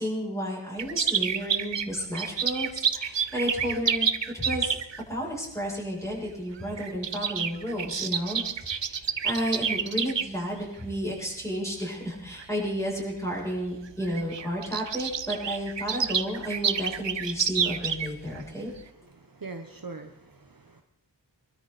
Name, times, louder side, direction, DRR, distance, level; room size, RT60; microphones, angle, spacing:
voice 1, 0.0-4.1 4.3-4.7 5.1-18.7, equal, 5° left, -5 dB, 7.9 m, -32 dB
sound 1, 0.8-5.0 6.0-6.3 6.6-10.2 10.9-11.3 11.9-12.0 12.3-12.4 13.4-13.5 13.7-13.8 14.0-18.4 18.7-18.8, right 7 dB, 80° right, 0.8 m, -29 dB
voice 2, 19.0-20.8, right 3 dB, 50° right, 4 dB, 1.3 m, -42 dB
23.5 x 13.0 x 4.3 m, 0.83 s
wide cardioid pair, 50°, 43 cm